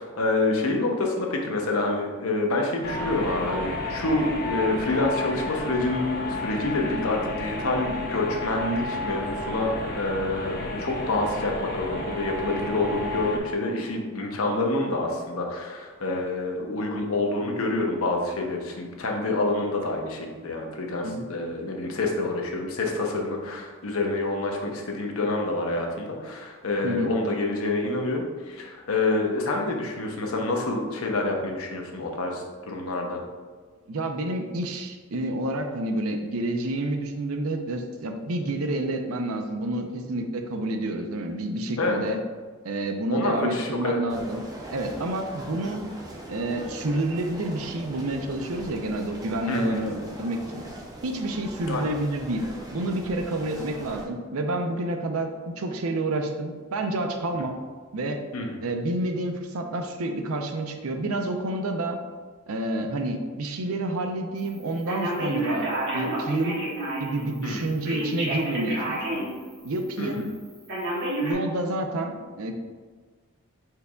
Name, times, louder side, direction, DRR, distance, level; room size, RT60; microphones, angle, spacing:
voice 1, 0.0-33.2 41.8-42.0 43.1-44.2 49.5-49.8 51.7-51.9 53.5-53.6 58.3-58.6 67.4-67.6 70.0-70.2, left 2 dB, 80° left, 1 dB, 0.8 m, -27 dB
sound 1, 2.8-13.4, left 1 dB, 45° left, 0.8 m, -32 dB
voice 2, 33.9-42.2 42.6-44.4 44.7-45.8 46.3-50.6 51.0-52.4 52.7-55.3 55.6-57.6 57.9-58.2 58.6-62.0 62.5-66.7 67.0-69.3 69.6-70.3 71.2-72.5, right 2 dB, 85° right, 5 dB, 0.6 m, -29 dB
sound 2, 44.1-54.0, right 1 dB, 20° right, 0.6 m, -41 dB
Telephone, 64.9-67.2 67.9-69.3 69.8-69.9 70.7-71.3, right 1 dB, 55° right, 1.4 m, -29 dB
5.0 x 4.5 x 2.3 m, 1.5 s
head